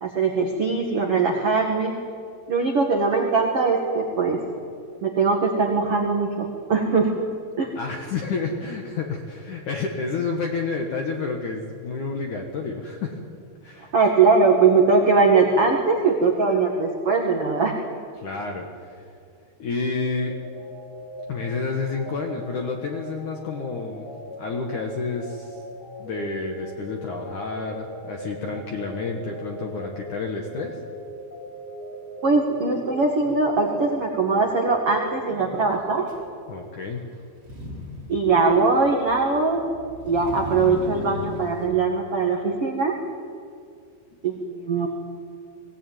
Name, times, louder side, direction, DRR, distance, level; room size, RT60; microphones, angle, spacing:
voice 1, 0.0-1.9 2.5-4.4 5.0-7.2 7.6-7.7 13.9-17.8 32.2-36.1 38.1-39.6 40.0-43.0 44.2-44.9, right 4 dB, 80° right, 1 dB, 1.3 m, -21 dB
voice 2, 7.8-13.2 13.6-14.1 18.2-19.1 19.6-20.4 21.3-24.1 24.4-25.6 26.0-30.8 36.5-37.0, left 4 dB, 65° left, 2 dB, 2.0 m, -30 dB
sound 1, 19.9-36.5, right 1 dB, 20° left, 4.0 m, -40 dB
Motor vehicle (road), 36.1-36.2 37.3-41.7, left 2 dB, 25° right, 3.4 m, -37 dB
20.0 x 18.5 x 9.1 m, 2.3 s
omnidirectional pair, 5.7 m